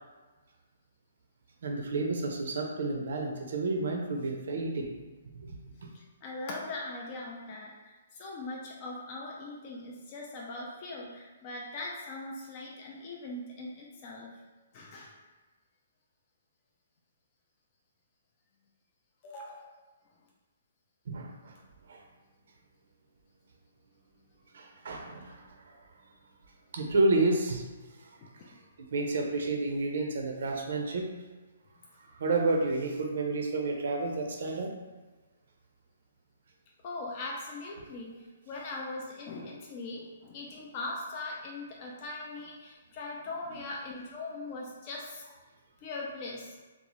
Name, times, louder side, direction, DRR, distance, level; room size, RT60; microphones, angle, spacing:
voice 1, 1.6-4.9 5.4-5.6 21.1-21.5 21.9-22.0 24.5-25.4 26.7-27.6 28.9-31.1 32.2-34.7, right 2 dB, 70° right, 2 dB, 0.5 m, -30 dB
voice 2, 5.9-14.3 14.7-15.2 19.2-19.7 28.5-28.6 36.8-45.4 45.8-46.6, left 2 dB, 35° left, -3 dB, 0.4 m, -40 dB
2.6 x 2.0 x 3.0 m, 1.3 s
hypercardioid pair, 145°, 0 cm